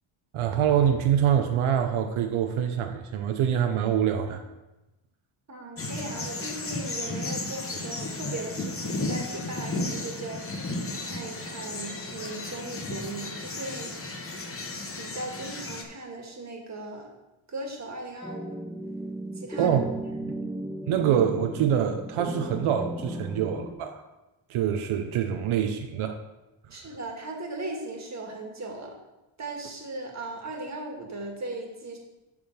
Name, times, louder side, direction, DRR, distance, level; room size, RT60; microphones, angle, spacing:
voice 1, 0.3-4.4 19.6-19.8 20.2-20.5 20.9-24.0 24.5-26.2, right 9 dB, 85° right, 5 dB, 0.8 m, -25 dB
voice 2, 5.5-10.4 11.0-13.9 15.0-17.1 17.5-18.6 19.3-19.8 26.7-29.0 29.4-32.0, right 2 dB, 35° right, 1 dB, 1.8 m, -38 dB
sound 1, 5.8-15.8, left 2 dB, 30° left, 1.0 m, -34 dB
sound 2, 18.2-23.8, right 1 dB, ahead, 0.4 m, -36 dB
9.1 x 3.7 x 6.5 m, 1.0 s
cardioid pair, 115°, 48 cm